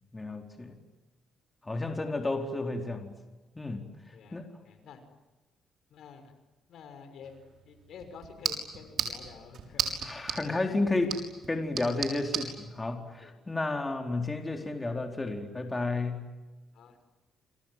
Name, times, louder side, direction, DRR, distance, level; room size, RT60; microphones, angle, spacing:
voice 1, 0.1-0.8 1.6-3.1 3.6-3.9 4.3-4.5 10.0-11.2 11.5-16.3, left 2 dB, 20° left, 4 dB, 4.3 m, -32 dB
voice 2, 4.1-5.0 5.9-6.3 6.7-7.3 7.6-10.0 11.8-12.0 13.2-13.3 16.7-17.0, left 6 dB, 70° left, 8 dB, 5.9 m, -50 dB
sound 1, 7.2-12.5, right 6 dB, 60° right, 6.4 m, -36 dB
29.5 x 25.5 x 7.7 m, 1.2 s
cardioid pair, 90°, 0 cm